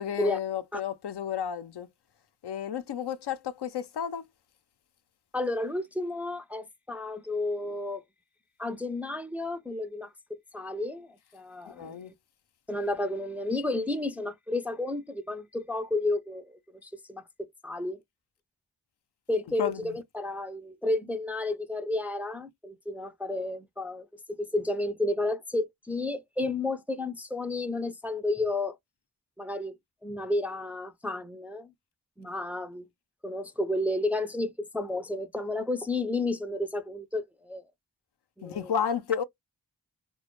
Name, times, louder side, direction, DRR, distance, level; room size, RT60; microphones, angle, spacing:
voice 1, 0.0-1.9 2.4-4.3 11.7-12.1 19.6-20.0 38.4-39.2, left 8 dB, 75° left, 0.5 m, -32 dB
voice 2, 5.3-8.0 8.6-12.1 12.7-17.2 17.6-18.0 19.3-28.8 29.4-29.8 30.0-31.7 32.2-32.9 33.2-37.7 38.4-38.7, left 2 dB, 5° right, 0.3 m, -32 dB
2.2 x 2.0 x 2.9 m
cardioid pair, 45°, 41 cm